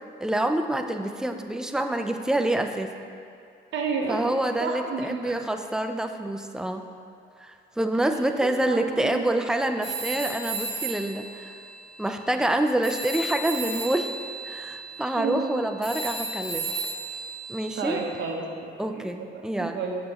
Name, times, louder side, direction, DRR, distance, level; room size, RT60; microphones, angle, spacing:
voice 1, 0.2-2.9 4.1-6.9 7.4-11.5 12.0-14.1 14.4-16.7 17.5-18.0 18.8-19.8, right 1 dB, 5° right, 6 dB, 0.3 m, -27 dB
voice 2, 3.7-4.2 4.6-5.4 8.1-8.2 8.7-9.3 15.2-15.5 17.8-19.3 19.6-20.0, right 4 dB, 65° right, 0 dB, 0.9 m, -31 dB
Telephone, 9.8-12.6 12.8-18.1, right 3 dB, 35° left, 1.3 m, -34 dB
6.8 x 6.3 x 2.9 m, 2.4 s
cardioid pair, 90°, 20 cm